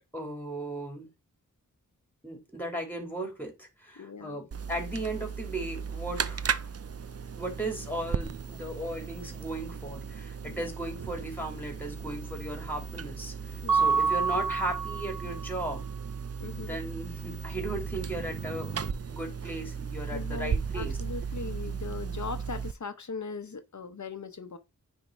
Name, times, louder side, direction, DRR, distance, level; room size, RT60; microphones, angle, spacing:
voice 1, 0.1-1.1 2.2-6.5 7.4-15.9 16.6-21.0, right 1 dB, 5° left, 3.1 m, -36 dB
voice 2, 4.0-4.5 10.5-10.7 13.6-14.0 16.4-16.8 20.1-24.6, left 4 dB, 60° left, 0.9 m, -39 dB
sound 1, 4.5-22.7, right 6 dB, 45° right, 0.6 m, -36 dB
Mallet percussion, 13.7-15.5, right 4 dB, 85° right, 0.8 m, -27 dB
9.5 x 3.7 x 4.6 m
wide cardioid pair, 65°, 33 cm